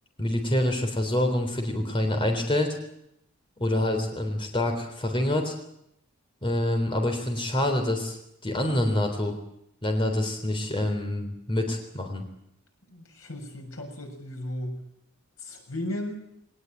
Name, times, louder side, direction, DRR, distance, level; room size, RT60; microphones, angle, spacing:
voice 1, 0.2-2.8 3.6-5.5 6.4-8.2 8.4-9.4 9.8-12.2, left 1 dB, 25° left, 4 dB, 3.7 m, -26 dB
voice 2, 12.9-14.8 15.4-16.2, left 1 dB, 85° left, 3 dB, 6.7 m, -35 dB
22.5 x 19.0 x 9.1 m, 0.78 s
head